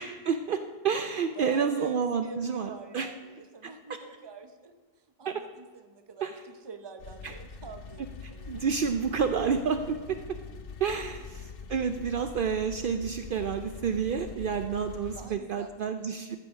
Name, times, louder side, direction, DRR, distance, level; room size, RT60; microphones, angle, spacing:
voice 1, 0.0-3.1 5.3-5.4 6.2-6.3 7.2-7.3 8.5-10.2 10.8-16.4, right 6 dB, 60° right, 8 dB, 0.7 m, -29 dB
voice 2, 1.3-8.7 11.2-11.3 15.1-16.1, right 4 dB, 25° right, 8 dB, 0.8 m, -46 dB
sound 1, 7.0-15.3, left 5 dB, 60° left, 0.9 m, -44 dB
14.0 x 5.6 x 6.4 m, 1.5 s
omnidirectional pair, 1.1 m